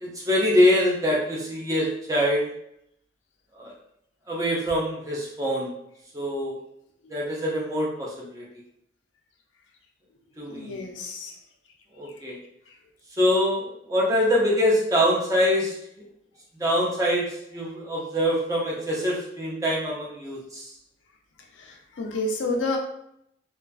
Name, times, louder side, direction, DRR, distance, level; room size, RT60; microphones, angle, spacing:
voice 1, 0.0-2.5 3.5-3.7 4.3-5.7 6.1-6.6 7.1-8.5 10.4-10.8 11.9-12.4 13.2-15.7 16.6-20.7, equal, 20° right, -4 dB, 0.5 m, -24 dB
voice 2, 10.5-11.3 22.0-22.8, left 2 dB, 85° left, 2 dB, 0.4 m, -29 dB
2.4 x 2.3 x 2.3 m, 0.76 s
head